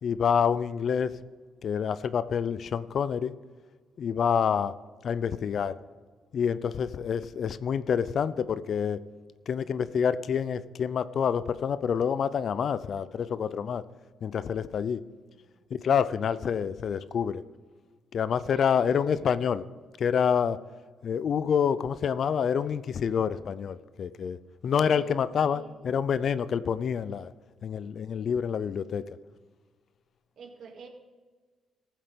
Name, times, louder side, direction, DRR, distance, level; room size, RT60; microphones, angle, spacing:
voice 1, 0.0-1.1 1.6-3.3 4.0-4.7 5.0-5.8 6.3-9.0 9.5-13.8 14.2-15.0 15.7-17.4 18.1-19.6 20.0-20.6 21.0-27.3 27.6-29.0, left 7 dB, 55° left, 15 dB, 0.5 m, -27 dB
voice 2, 18.5-19.2 24.7-25.9 30.4-30.9, right 5 dB, 60° right, 3 dB, 2.2 m, -48 dB
14.5 x 7.5 x 5.2 m, 1.4 s
cardioid pair, 90°, 0 cm